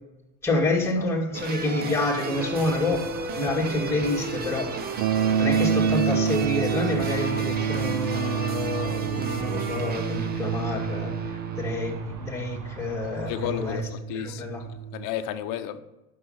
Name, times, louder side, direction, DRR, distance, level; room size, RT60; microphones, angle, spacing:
voice 1, 0.4-4.7 5.4-13.8 14.1-14.6, left 2 dB, 5° left, 2.3 m, -28 dB
sound 1, 1.3-12.0, right 4 dB, 25° right, 0.6 m, -34 dB
sound 2, 2.3-13.8, right 4 dB, 45° right, 1.2 m, -43 dB
sound 3, 5.0-15.1, right 7 dB, 60° right, 0.7 m, -28 dB
voice 2, 13.3-15.8, left 10 dB, 50° left, 0.9 m, -33 dB
9.2 x 6.6 x 5.8 m
supercardioid pair, 145°, 42 cm